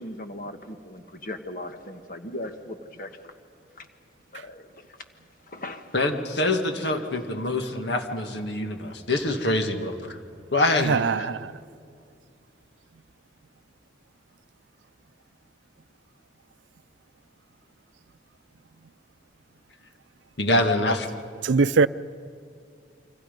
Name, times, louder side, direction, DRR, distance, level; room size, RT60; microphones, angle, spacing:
voice 1, 0.0-3.1 3.8-3.9 4.3-4.7 5.5-5.8, left 1 dB, 50° left, 1.5 m, -38 dB
voice 2, 5.9-10.2 10.5-11.3 20.4-21.1, left 2 dB, 75° left, 1.8 m, -25 dB
voice 3, 10.9-11.5 21.4-21.9, right 4 dB, 90° right, 0.5 m, -21 dB
29.0 x 25.0 x 5.3 m
head